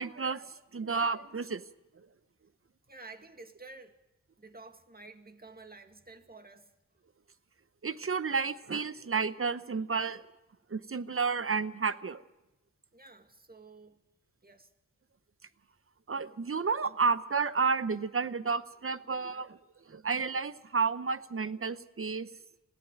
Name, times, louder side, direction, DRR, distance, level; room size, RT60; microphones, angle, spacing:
voice 1, 0.0-1.6 7.8-10.2 10.7-12.2 16.1-19.6 19.9-22.3, right 5 dB, 45° right, 0.8 m, -31 dB
voice 2, 2.9-4.0 4.4-6.7 12.9-14.0 14.4-14.7, right 3 dB, 30° right, 2.0 m, -51 dB
20.5 x 14.5 x 9.3 m
cardioid pair, 60°, 31 cm